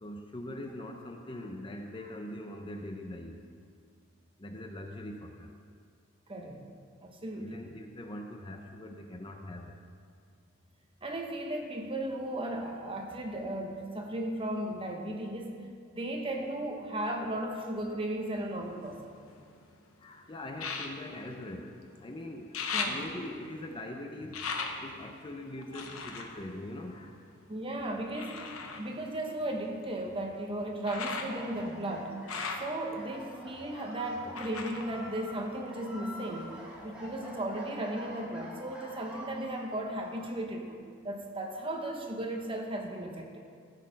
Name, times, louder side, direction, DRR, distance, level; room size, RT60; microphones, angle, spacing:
voice 1, 0.0-3.4 4.4-5.6 7.3-9.8 20.0-22.6 22.8-24.4 24.8-27.1 33.0-33.2 33.7-33.9, left 1 dB, 25° left, 3 dB, 0.6 m, -42 dB
voice 2, 6.3-6.6 7.0-7.6 11.0-15.5 15.9-19.0 22.7-23.0 27.5-32.2 32.6-36.6 36.8-40.8 41.0-43.4, right 1 dB, 25° right, 1 dB, 1.1 m, -36 dB
sound 1, 18.4-19.7 20.5-22.1 22.3-27.5 28.1-36.0 36.3-37.1 37.6-37.7, left 4 dB, 75° left, 1.0 m, -40 dB
sound 2, 30.8-40.4, equal, 5° right, 1.7 m, -48 dB
14.5 x 6.6 x 5.2 m, 2.2 s
head